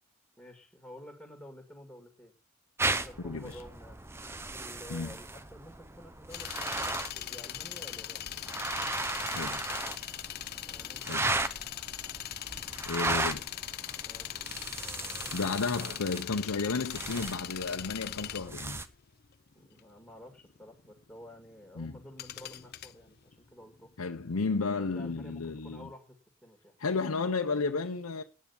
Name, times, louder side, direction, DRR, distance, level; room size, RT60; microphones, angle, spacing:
voice 1, 0.4-2.3 2.9-4.0 4.5-6.5 6.7-8.2 10.7-11.4 14.0-14.5 14.8-16.0 19.5-23.9 24.8-26.2 26.4-26.8, left 1 dB, 5° left, 2.0 m, -50 dB
sound 1, 2.8-18.9, right 2 dB, 10° right, 0.6 m, -36 dB
voice 2, 3.2-3.6 4.9-5.1 9.3-9.6 11.1-11.2 12.9-13.4 15.3-18.8 21.8-22.0 24.0-25.9 26.8-28.2, left 4 dB, 85° left, 0.8 m, -32 dB
sound 2, 6.3-23.9 24.1-24.2, left 12 dB, 45° left, 0.6 m, -41 dB
9.5 x 9.5 x 7.1 m
head